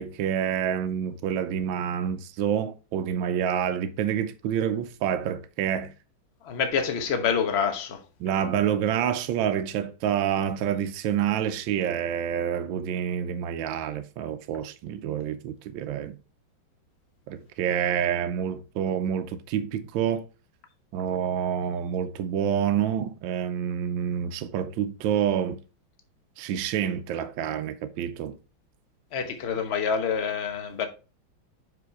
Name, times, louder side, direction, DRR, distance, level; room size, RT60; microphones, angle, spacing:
voice 1, 0.0-5.9 8.2-16.2 17.3-20.2 20.9-25.6 26.4-28.4, right 9 dB, 75° right, 1.3 m, -28 dB
voice 2, 6.4-8.0 29.1-30.9, left 6 dB, 40° left, 1.0 m, -27 dB
5.9 x 4.9 x 4.6 m
omnidirectional pair, 2.3 m